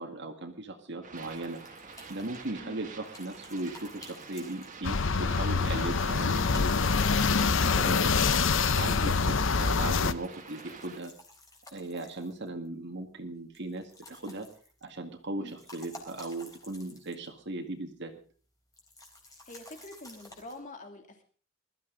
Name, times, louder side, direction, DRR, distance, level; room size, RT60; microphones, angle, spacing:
voice 1, 0.0-1.6 2.1-8.3 8.7-11.1 11.7-14.5 14.8-18.1, right 2 dB, 60° right, 4 dB, 2.0 m, -38 dB
sound 1, 1.0-11.0, right 4 dB, 40° right, 2.2 m, -48 dB
sound 2, 1.1-5.1 6.0-9.0 9.9-12.7 13.5-15.0 15.3-17.4 17.7-17.8 18.7-20.6, left 2 dB, 20° left, 4.1 m, -53 dB
sound 3, 4.8-10.1, left 5 dB, 70° left, 0.8 m, -25 dB
voice 2, 19.5-21.2, left 1 dB, 40° left, 4 dB, 2.9 m, -46 dB
21.0 x 13.5 x 3.9 m, 0.41 s
head